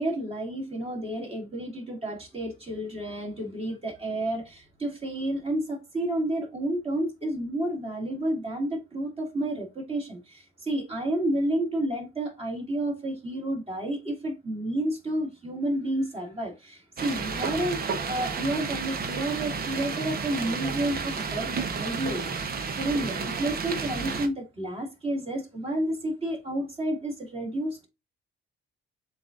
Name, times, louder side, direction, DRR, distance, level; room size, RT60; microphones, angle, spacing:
voice 1, 0.0-27.9, right 1 dB, 30° right, 2.2 m, -30 dB
sound 1, 17.0-24.3, right 5 dB, 50° right, 0.9 m, -31 dB
7.5 x 2.5 x 2.5 m
cardioid pair, 90°, 20 cm